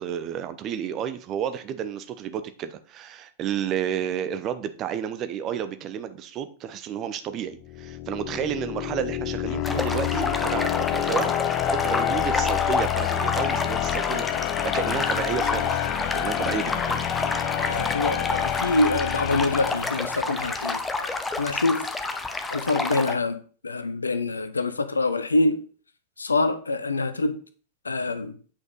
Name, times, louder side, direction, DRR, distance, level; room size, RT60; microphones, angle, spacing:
voice 1, 0.0-17.0, right 9 dB, 35° right, 0.8 m, -31 dB
sound 1, 7.6-20.5, left 11 dB, 40° left, 0.6 m, -28 dB
sound 2, 9.6-23.1, left 3 dB, 10° left, 0.9 m, -30 dB
voice 2, 17.7-21.1 21.4-21.9 22.5-23.4 23.6-25.6 26.2-27.3 27.8-28.4, left 2 dB, 75° left, 0.8 m, -25 dB
8.6 x 5.3 x 3.9 m
figure-of-eight pair, 90°, 0 cm